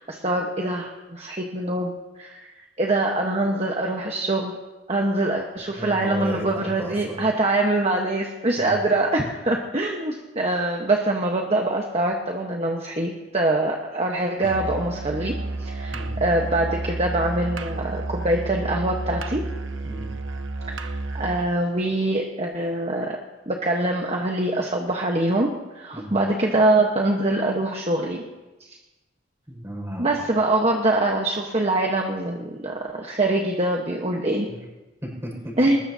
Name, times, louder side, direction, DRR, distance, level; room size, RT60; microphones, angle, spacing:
voice 1, 0.0-1.9 2.2-2.5 2.8-4.5 4.9-15.3 15.6-19.4 20.7-23.2 23.5-28.2 28.6-28.8 30.0-34.5 35.6-35.8, right 2 dB, 35° right, 1 dB, 1.2 m, -24 dB
voice 2, 5.8-7.2 8.6-8.8 15.9-16.2 19.8-20.1 25.9-26.2 29.5-30.3 34.5-34.6 35.0-35.5, equal, 15° right, -2 dB, 5.5 m, -34 dB
Musical instrument, 14.4-21.5, right 2 dB, 80° right, 1.0 m, -31 dB
21.5 x 20.0 x 2.8 m, 1.1 s
head